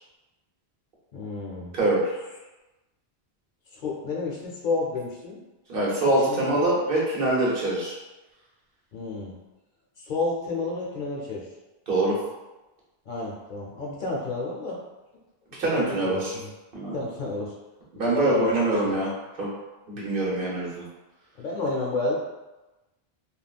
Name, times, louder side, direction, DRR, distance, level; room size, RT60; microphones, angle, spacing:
voice 1, 1.1-1.7 3.7-5.4 6.3-6.6 8.9-9.4 10.0-11.5 13.1-14.8 15.7-16.5 16.9-17.5 18.0-19.0 19.9-20.1 21.4-22.1, left 3 dB, 55° left, -3 dB, 0.7 m, -31 dB
voice 2, 1.7-2.1 5.7-7.9 11.9-12.2 15.6-16.4 16.7-17.0 17.9-19.1 19.4-19.5 19.9-20.8, right 2 dB, 60° right, -5 dB, 1.1 m, -24 dB
3.4 x 2.3 x 2.3 m, 1.1 s
omnidirectional pair, 1.1 m